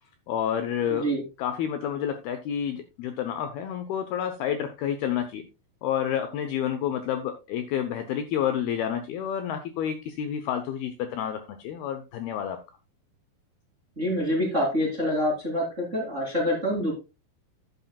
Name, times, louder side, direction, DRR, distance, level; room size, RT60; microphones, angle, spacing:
voice 1, 0.3-1.1 1.4-5.5 5.8-12.6, left 9 dB, 75° left, 8 dB, 2.4 m, -29 dB
voice 2, 0.9-1.2 14.0-16.9, equal, 20° right, -2 dB, 2.2 m, -26 dB
11.5 x 9.4 x 2.3 m, 0.27 s
omnidirectional pair, 5.1 m